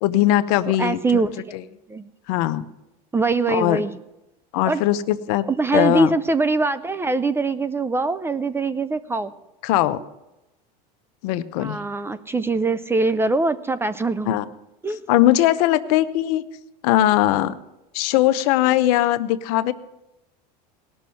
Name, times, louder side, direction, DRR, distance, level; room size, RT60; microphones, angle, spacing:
voice 1, 0.0-1.2 1.5-1.6 2.3-2.6 3.5-3.8 4.5-5.4 5.7-6.1 9.6-10.0 11.2-11.8 14.2-14.5 15.1-16.4 16.8-17.5 17.9-19.7, left 14 dB, 65° left, 12 dB, 0.8 m, -20 dB
voice 2, 0.8-1.4 1.9-2.1 3.1-3.9 4.7-4.8 5.5-9.3 11.6-14.4 14.8-15.1, right 3 dB, 10° right, 14 dB, 0.4 m, -23 dB
18.5 x 6.3 x 5.7 m, 0.93 s
supercardioid pair, 125°, 21 cm